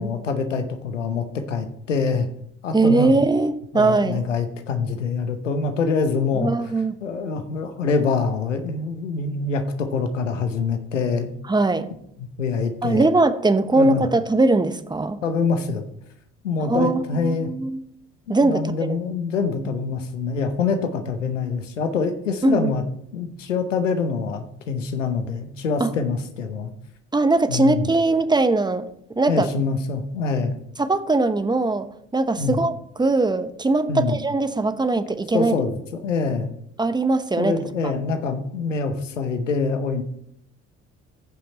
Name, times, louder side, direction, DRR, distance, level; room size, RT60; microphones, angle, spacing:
voice 1, 0.0-2.3 2.6-3.2 3.7-6.5 7.0-11.3 12.4-13.1 13.8-14.1 15.2-15.9 16.4-17.5 18.3-22.8 23.1-26.7 27.5-27.9 29.3-30.5 32.4-32.6 33.9-34.2 35.3-36.5 37.4-40.0, left 4 dB, 90° left, 8 dB, 0.9 m, -25 dB
voice 2, 2.7-4.2 6.4-6.9 11.5-11.9 12.8-15.2 16.7-17.8 18.3-18.7 22.4-22.7 25.8-25.9 27.1-28.9 29.2-29.5 30.8-31.9 32.1-35.5 36.8-37.5, right 2 dB, 10° right, 12 dB, 0.9 m, -20 dB
15.0 x 5.7 x 4.2 m, 0.72 s
figure-of-eight pair, 50°, 36 cm